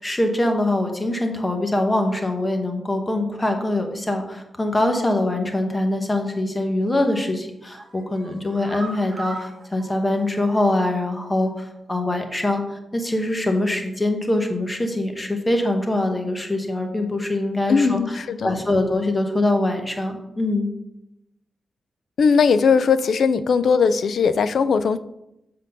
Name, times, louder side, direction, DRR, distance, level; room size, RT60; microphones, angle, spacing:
voice 1, 0.0-20.7, left 1 dB, 15° left, 4 dB, 1.0 m, -23 dB
sound 1, 6.8-7.2 7.6-11.0 11.3-11.4 11.8-11.9, right 3 dB, 35° right, 1.4 m, -40 dB
voice 2, 17.7-18.6 22.2-25.0, left 5 dB, 65° left, 13 dB, 0.4 m, -19 dB
7.4 x 3.8 x 6.7 m, 0.88 s
wide cardioid pair, 155°, 0 cm